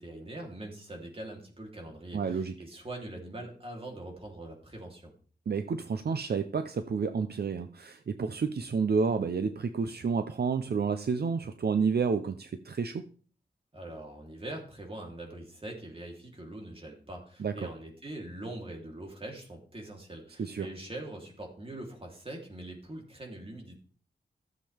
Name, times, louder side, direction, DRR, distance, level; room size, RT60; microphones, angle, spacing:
voice 1, 0.0-5.1 13.7-23.7, right 1 dB, 35° right, 0 dB, 3.3 m, -43 dB
voice 2, 2.1-2.5 5.5-13.1 17.4-17.7 20.4-20.7, right 5 dB, 65° right, 9 dB, 0.7 m, -30 dB
15.0 x 7.5 x 3.5 m, 0.41 s
wide cardioid pair, 105°, 17 cm